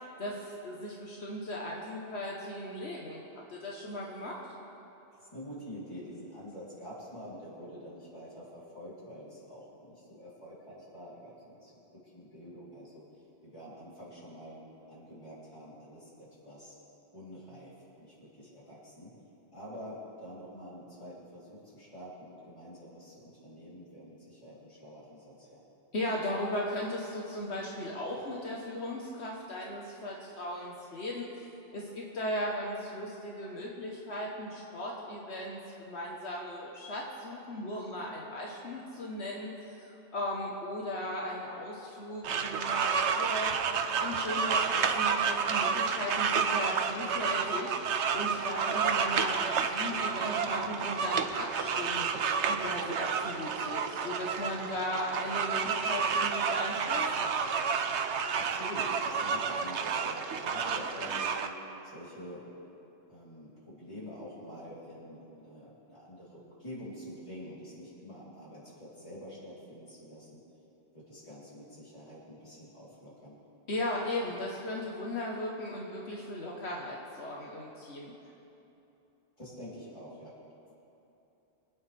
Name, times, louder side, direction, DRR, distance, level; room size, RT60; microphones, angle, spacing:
voice 1, 0.2-3.2 3.5-4.4 25.9-31.5 31.7-39.8 40.1-43.6 44.0-52.1 52.4-57.4 73.7-78.1, left 1 dB, 75° left, -3 dB, 1.6 m, -37 dB
voice 2, 5.2-13.0 13.4-14.6 14.9-16.8 17.1-19.1 19.5-25.6 58.3-61.4 61.8-62.4 63.1-70.4 70.9-73.4 79.4-80.3, equal, 25° left, -8 dB, 3.7 m, -47 dB
sound 1, 42.2-61.5, right 6 dB, 85° right, 1.0 m, -30 dB
25.5 x 9.4 x 3.5 m, 3.0 s
omnidirectional pair, 1.1 m